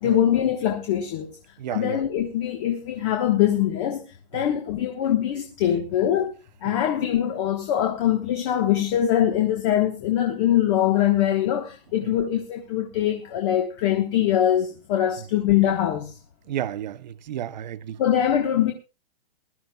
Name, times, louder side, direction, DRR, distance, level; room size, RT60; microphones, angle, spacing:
voice 1, 0.0-1.4 1.7-4.0 4.3-6.3 6.6-16.1 18.0-18.7, left 11 dB, 30° left, 1.3 m, -23 dB
voice 2, 1.6-2.0 4.3-4.5 6.6-6.8 12.0-12.1 15.2-15.3 16.5-18.0, right 11 dB, 45° right, 0.7 m, -33 dB
21.0 x 12.5 x 2.3 m
hypercardioid pair, 170°, 31 cm